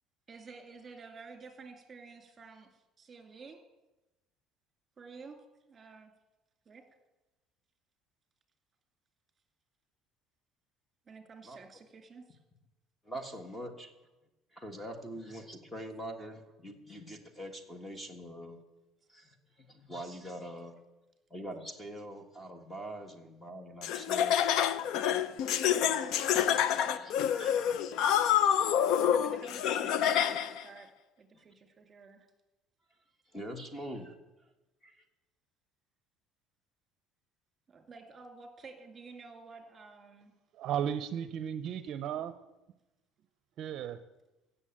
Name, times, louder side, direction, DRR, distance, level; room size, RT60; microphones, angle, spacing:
voice 1, 0.3-2.7 3.0-3.6 5.0-5.4 5.7-6.1 6.7-6.8 11.1-12.4 20.4-20.5 25.8-26.3 29.0-30.9 31.2-32.3 37.7-40.3, right 4 dB, 25° right, 6 dB, 2.4 m, -51 dB
voice 2, 13.0-13.9 14.5-18.6 19.1-20.8 21.3-24.9 25.5-25.6 25.8-26.1 26.7-27.7 28.5-28.7 31.3-31.4 33.3-34.1 34.8-35.0, right 1 dB, 10° left, 6 dB, 1.5 m, -44 dB
Laughter, 23.8-30.6, left 9 dB, 65° left, 0.6 m, -27 dB
voice 3, 40.5-42.3 43.6-44.0, right 9 dB, 55° right, 11 dB, 0.6 m, -35 dB
16.0 x 7.0 x 8.8 m, 1.0 s
cardioid pair, 135°, 0 cm